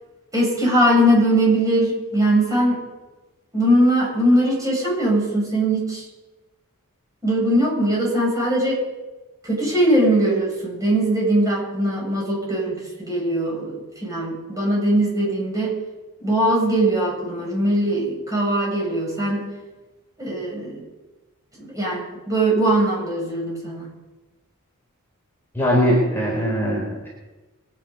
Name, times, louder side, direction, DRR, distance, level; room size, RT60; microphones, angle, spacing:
voice 1, 0.3-2.8 3.5-6.0 7.2-8.8 9.4-15.7 16.2-19.4 20.2-20.8 21.6-23.9, right 1 dB, 15° right, -3 dB, 6.9 m, -20 dB
voice 2, 25.5-27.1, equal, 10° left, -4 dB, 4.4 m, -20 dB
24.0 x 9.8 x 5.4 m, 1.2 s
head